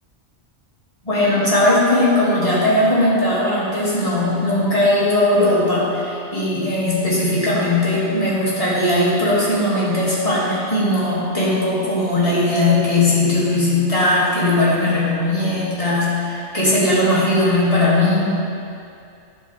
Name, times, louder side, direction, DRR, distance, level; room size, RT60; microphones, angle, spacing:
voice 1, 1.0-18.4, left 1 dB, 30° left, -9 dB, 2.4 m, -18 dB
11.0 x 7.5 x 3.4 m, 2.5 s
omnidirectional pair, 1.2 m